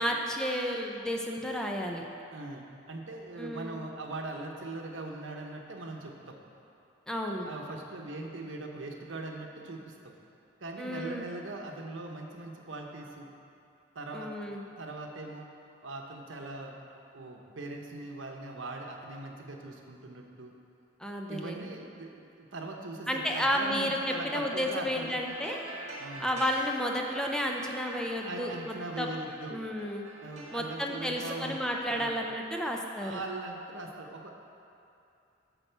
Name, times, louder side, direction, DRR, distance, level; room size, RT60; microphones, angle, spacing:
voice 1, 0.0-2.0 3.4-3.8 7.1-7.5 10.8-11.2 14.1-14.6 21.0-21.7 23.1-25.6 26.2-29.1 29.5-30.1 30.5-33.2, equal, 5° left, 0 dB, 0.5 m, -32 dB
voice 2, 2.3-6.4 7.4-10.1 10.6-13.3 13.9-14.3 14.6-15.5 15.8-16.8 17.1-20.5 21.3-25.2 26.0-26.4 28.2-29.6 30.2-31.6 31.9-32.2 33.0-34.4, right 2 dB, 70° right, 2 dB, 0.9 m, -41 dB
sound 1, 25.3-32.9 33.2-33.3, right 1 dB, 35° right, 1.1 m, -46 dB
8.9 x 4.2 x 6.8 m, 2.6 s
head